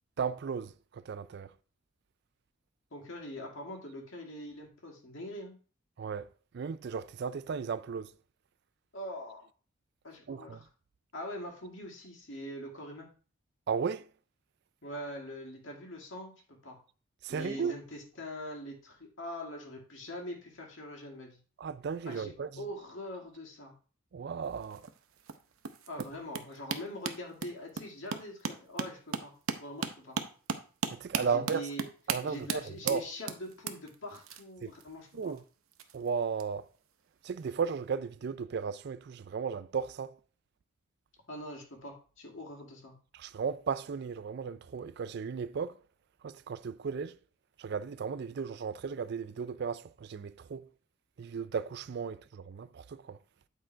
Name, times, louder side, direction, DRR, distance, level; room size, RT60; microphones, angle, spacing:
voice 1, 0.2-1.5 6.0-6.3 6.5-8.1 10.3-10.6 13.7-14.0 17.2-17.7 21.6-22.6 24.1-24.9 30.9-31.7 32.1-33.1 34.6-34.7 35.1-35.4 35.9-36.7 37.2-40.2 43.1-45.8 46.2-47.2 47.6-50.7 51.2-53.2, right 6 dB, 50° right, 0.3 m, -35 dB
voice 2, 2.9-5.6 8.9-9.5 10.0-10.6 11.1-13.1 14.8-16.8 17.3-21.4 22.1-23.7 25.9-29.3 29.6-30.2 31.2-31.8 32.2-35.3 41.3-42.9, left 1 dB, 65° left, 2.0 m, -43 dB
sound 1, 24.4-36.4 37.4-37.6 37.9-38.0, right 6 dB, 85° right, 0.7 m, -38 dB
8.7 x 3.8 x 4.5 m
head